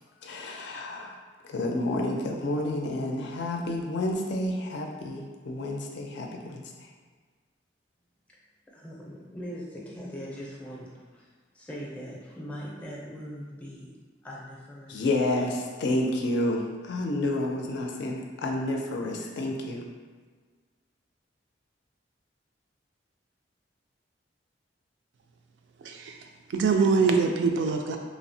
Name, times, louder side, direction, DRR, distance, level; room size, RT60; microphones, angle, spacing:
voice 1, 0.2-1.2 1.4-6.9 14.9-19.8, left 1 dB, 70° left, 1 dB, 0.4 m, -30 dB
voice 2, 8.7-11.3 11.5-13.9 14.2-15.0 17.8-18.0 19.2-19.3 19.7-19.8, equal, 10° left, -5 dB, 0.5 m, -41 dB
voice 3, 25.8-26.2 26.5-28.0, right 4 dB, 70° right, 3 dB, 0.3 m, -23 dB
3.1 x 2.0 x 2.6 m, 1.5 s
head